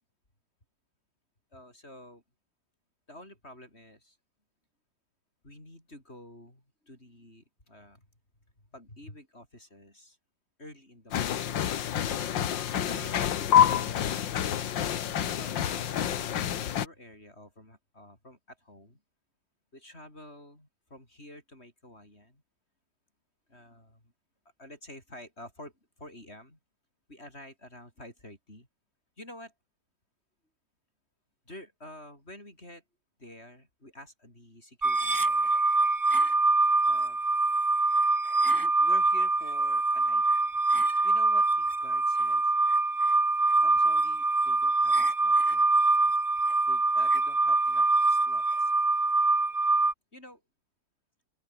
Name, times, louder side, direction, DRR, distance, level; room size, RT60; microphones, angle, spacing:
voice 1, 1.5-2.2 3.1-4.2 5.4-8.1 8.7-10.2 10.6-11.5 12.5-14.3 15.3-19.0 19.7-22.4 23.5-24.1 24.6-25.7 26.0-26.6 27.1-28.7 29.2-29.5 31.5-32.8 33.2-35.5 36.9-37.2 38.0-38.1 38.6-40.4 41.0-42.5 43.6-45.6 46.6-48.7 50.1-50.4, left 1 dB, 35° left, 8.1 m, -49 dB
sound 1, 11.1-16.9, left 10 dB, 85° left, 1.9 m, -27 dB
sound 2, 34.8-49.9, right 3 dB, 20° right, 0.5 m, -24 dB
open air
omnidirectional pair, 2.0 m